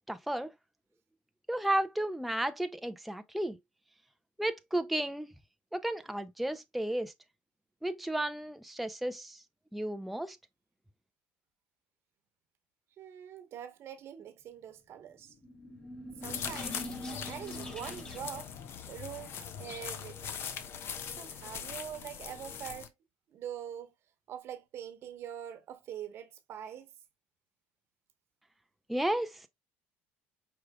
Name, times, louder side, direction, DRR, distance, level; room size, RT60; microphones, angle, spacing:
voice 1, 0.1-0.5 1.5-3.6 4.4-5.3 5.7-7.1 7.8-9.4 9.7-10.4 28.9-29.5, right 1 dB, ahead, 0.4 m, -33 dB
voice 2, 13.0-15.3 16.2-16.8 17.2-18.5 18.9-20.5 21.1-22.9 23.3-23.9 24.3-26.9, right 9 dB, 55° right, 1.0 m, -44 dB
sound 1, 15.2-18.5, left 1 dB, 20° left, 2.1 m, -44 dB
sound 2, 16.2-22.9, left 7 dB, 55° left, 0.9 m, -41 dB
4.8 x 4.7 x 2.2 m
supercardioid pair, 90°, 5 cm